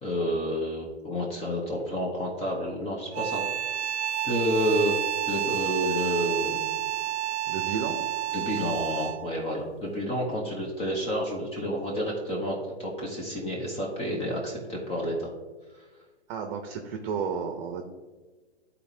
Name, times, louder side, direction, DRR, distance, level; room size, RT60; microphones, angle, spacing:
voice 1, 0.0-3.4 4.2-5.0 5.3-6.7 8.3-15.3, equal, 15° left, -1 dB, 1.1 m, -29 dB
sound 1, 3.1-9.3, right 12 dB, 75° right, 0.5 m, -30 dB
voice 2, 7.5-8.0 16.3-17.8, right 6 dB, 40° right, 4 dB, 0.8 m, -32 dB
11.5 x 4.2 x 2.8 m, 1.3 s
hypercardioid pair, 120°, 34 cm